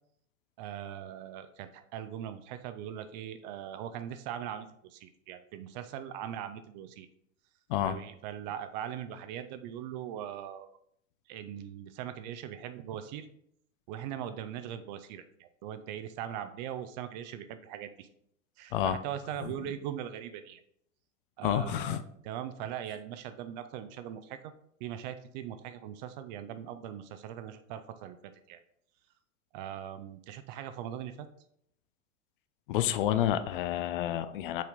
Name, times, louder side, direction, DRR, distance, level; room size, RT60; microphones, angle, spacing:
voice 1, 0.6-7.1 7.8-10.7 11.3-13.3 13.9-18.1 18.6-20.6 21.4-22.0 22.2-24.5 24.8-28.6 29.5-31.3, right 10 dB, 35° right, 10 dB, 0.5 m, -40 dB
voice 2, 21.4-22.0 32.7-34.6, left 11 dB, 45° left, 12 dB, 0.5 m, -29 dB
6.1 x 4.3 x 3.9 m, 0.69 s
figure-of-eight pair, 90°, 40 cm